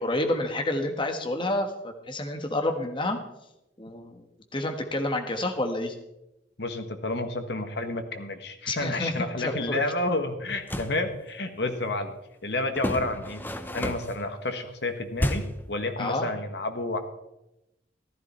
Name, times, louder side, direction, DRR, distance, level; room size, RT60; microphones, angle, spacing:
voice 1, 0.0-3.2 3.8-4.2 4.5-5.9 8.7-9.8 16.0-16.3, left 1 dB, 25° left, 5 dB, 1.4 m, -29 dB
voice 2, 6.6-12.1 12.4-13.4 13.7-15.4 15.7-17.0, left 2 dB, 65° left, 7 dB, 1.6 m, -30 dB
sound 1, 10.5-11.0 12.8-14.2 15.2-15.7, equal, 10° left, 0.8 m, -30 dB
14.5 x 13.0 x 4.4 m, 0.87 s
head